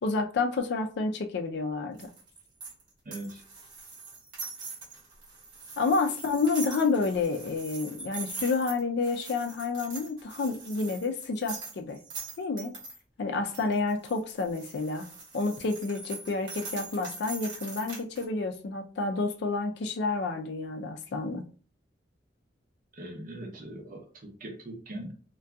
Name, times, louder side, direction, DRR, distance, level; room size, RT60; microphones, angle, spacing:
voice 1, 0.0-2.1 5.8-12.0 12.4-12.8 13.2-15.0 15.3-21.4, left 3 dB, 65° left, 0.4 m, -29 dB
sound 1, 2.0-13.0 13.5-18.2, right 3 dB, 70° right, 1.0 m, -42 dB
voice 2, 3.1-3.4 22.9-25.1, right 1 dB, 45° right, 0.7 m, -41 dB
2.6 x 2.2 x 2.2 m
head